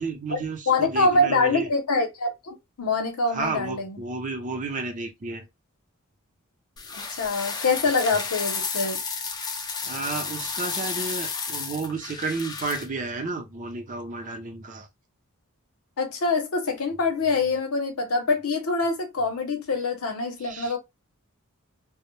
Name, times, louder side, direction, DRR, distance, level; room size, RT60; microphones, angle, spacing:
voice 1, 0.0-1.7 3.3-5.5 9.8-14.9 20.4-20.7, right 3 dB, 35° right, 0.5 m, -32 dB
voice 2, 0.7-4.0 6.9-9.0 16.0-20.8, left 3 dB, 80° left, 0.7 m, -25 dB
sound 1, 6.8-12.9, left 5 dB, 20° left, 0.3 m, -32 dB
2.1 x 2.0 x 3.0 m
head